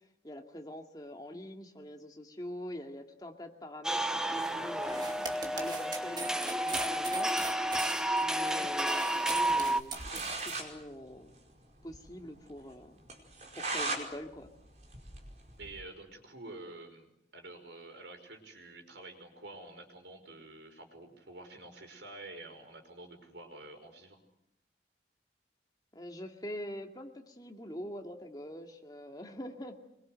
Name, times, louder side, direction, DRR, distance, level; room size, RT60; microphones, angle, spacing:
voice 1, 0.2-5.1 5.5-7.4 8.2-11.3 11.8-13.0 13.6-14.5 25.9-29.8, equal, 20° left, 3 dB, 2.5 m, -44 dB
sound 1, 3.8-9.8, right 1 dB, 5° right, 1.0 m, -31 dB
sound 2, 4.8-10.6, right 3 dB, 25° right, 2.3 m, -41 dB
sound 3, 9.6-9.7 9.9-10.7 11.0-11.1 11.4-11.5 11.9-12.0 12.4-12.5 13.1-14.0 14.4-15.8, right 3 dB, 40° right, 4.9 m, -37 dB
voice 2, 15.6-24.2, right 2 dB, 85° right, 5 dB, 5.4 m, -49 dB
25.5 x 23.0 x 7.9 m, 0.81 s
head